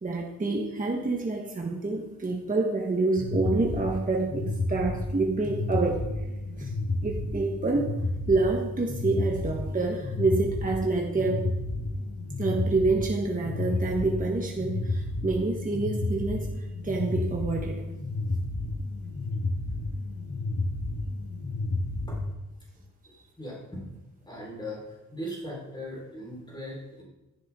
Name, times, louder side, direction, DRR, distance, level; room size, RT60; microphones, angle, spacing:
voice 1, 0.0-6.3 6.6-6.7 7.0-8.0 8.3-11.5 12.4-17.9, right 3 dB, 25° right, 0 dB, 1.2 m, -27 dB
sound 1, 3.2-22.2, left 2 dB, 55° left, 2.2 m, -31 dB
voice 2, 23.4-23.9 24.2-27.0, equal, 15° left, -4 dB, 4.2 m, -39 dB
15.0 x 11.5 x 3.7 m, 1.0 s
wide cardioid pair, 160°, 32 cm